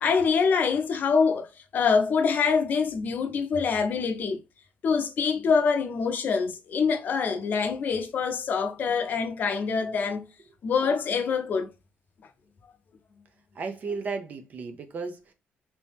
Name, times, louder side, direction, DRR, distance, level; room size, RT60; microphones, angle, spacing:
voice 1, 0.0-1.5 1.7-4.4 4.8-10.3 10.6-11.7, left 5 dB, 45° left, 0.6 m, -25 dB
voice 2, 13.5-15.3, right 4 dB, 45° right, 0.5 m, -34 dB
2.9 x 2.7 x 3.4 m
cardioid pair, 150°, 4 cm